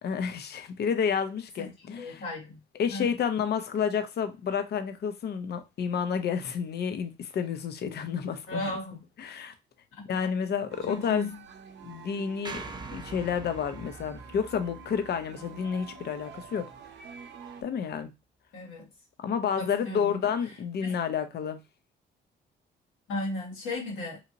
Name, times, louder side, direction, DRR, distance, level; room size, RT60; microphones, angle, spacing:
voice 1, 0.0-2.2 2.7-8.7 9.2-9.5 10.1-11.3 11.8-12.6 12.9-16.7 17.6-18.1 19.2-21.6, left 7 dB, 55° left, 0.6 m, -30 dB
voice 2, 2.0-2.6 2.9-3.1 8.5-9.0 10.1-10.3 10.9-11.4 18.5-18.9 19.6-20.3 20.8-20.9 23.1-24.2, left 2 dB, 85° left, 1.6 m, -35 dB
sound 1, 10.7-17.6, right 6 dB, 65° right, 0.6 m, -48 dB
sound 2, 12.4-16.8, right 3 dB, 20° right, 0.4 m, -44 dB
2.9 x 2.8 x 2.5 m
cardioid pair, 90°, 20 cm